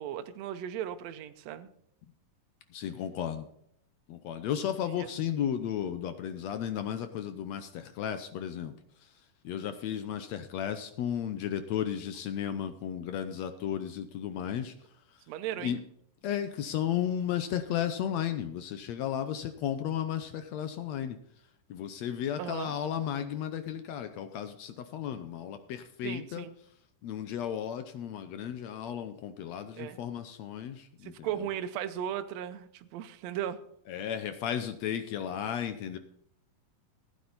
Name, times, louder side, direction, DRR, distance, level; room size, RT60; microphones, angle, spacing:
voice 1, 0.0-1.7 5.0-5.1 15.3-15.8 22.4-22.7 26.0-26.5 29.8-30.0 31.0-33.6, right 10 dB, 75° right, 9 dB, 1.6 m, -36 dB
voice 2, 2.7-3.5 4.1-8.7 9.4-14.7 15.6-15.8 16.2-21.2 21.7-26.5 27.0-31.5 33.9-36.0, left 9 dB, 75° left, 9 dB, 1.6 m, -34 dB
15.5 x 9.6 x 4.1 m, 0.70 s
omnidirectional pair, 3.9 m